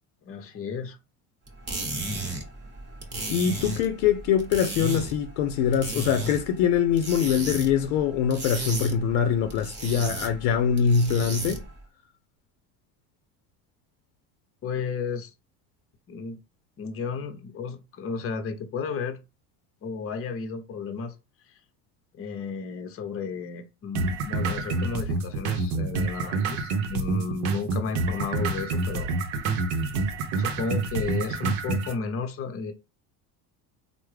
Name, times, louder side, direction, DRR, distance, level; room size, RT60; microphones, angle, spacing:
voice 1, 0.2-1.0 14.6-15.3 16.1-16.4 16.8-19.2 19.8-21.1 22.1-29.1 30.4-32.7, left 5 dB, 30° left, 0.6 m, -33 dB
sound 1, 1.5-11.8, right 2 dB, 25° right, 1.0 m, -35 dB
voice 2, 3.3-11.6, left 7 dB, 90° left, 0.6 m, -23 dB
sound 2, 24.0-32.0, right 3 dB, 80° right, 0.7 m, -27 dB
3.5 x 2.0 x 3.2 m
cardioid pair, 125°, 44 cm